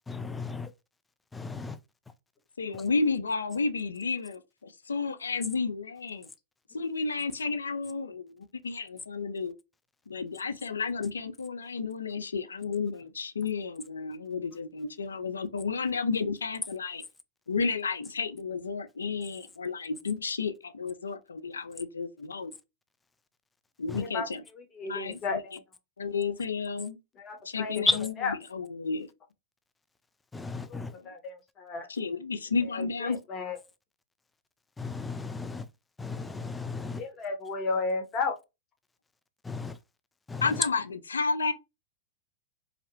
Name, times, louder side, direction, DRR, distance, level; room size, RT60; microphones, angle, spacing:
voice 1, 0.1-0.7 1.3-1.8 23.9-24.0 27.9-28.0 30.3-30.9 34.8-35.7 36.0-37.0 39.4-39.8 40.3-40.5, left 3 dB, 10° left, 0.3 m, -33 dB
voice 2, 2.6-6.3 6.7-9.5 10.1-17.0 17.5-22.5 23.8-24.4 24.8-25.6 26.0-27.0 27.4-28.1 28.5-29.1 30.9-31.1 31.9-33.2 40.4-41.5, left 4 dB, 90° left, 0.3 m, -32 dB
voice 3, 24.0-24.3 24.5-25.6 27.2-27.8 28.2-28.3 30.7-31.9 32.7-33.6 36.8-38.4, left 4 dB, 35° left, 0.9 m, -34 dB
2.7 x 2.0 x 2.6 m
hypercardioid pair, 105°, 0 cm